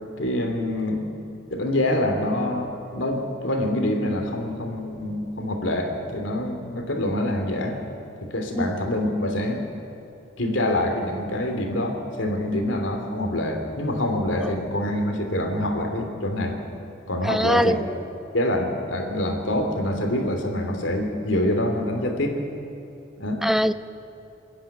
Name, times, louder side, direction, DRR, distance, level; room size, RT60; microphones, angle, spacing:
voice 1, 0.2-1.1 1.5-7.8 8.2-9.7 10.4-16.6 17.1-17.8 18.3-22.4 23.2-23.4, left 1 dB, 85° left, 4 dB, 3.1 m, -25 dB
voice 2, 17.2-17.8 23.4-23.7, equal, ahead, 13 dB, 0.5 m, -21 dB
27.0 x 10.5 x 9.8 m, 2.9 s
head